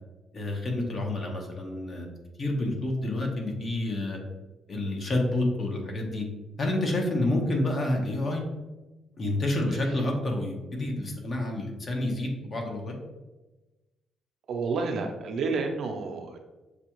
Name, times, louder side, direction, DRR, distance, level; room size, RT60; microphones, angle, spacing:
voice 1, 0.3-2.1 2.4-4.2 4.7-6.2 6.6-8.4 9.2-13.0, left 1 dB, 45° left, 1 dB, 1.1 m, -29 dB
voice 2, 14.5-16.4, right 4 dB, 65° right, 3 dB, 0.6 m, -30 dB
6.8 x 2.4 x 3.1 m, 1.1 s
cardioid pair, 90°, 0 cm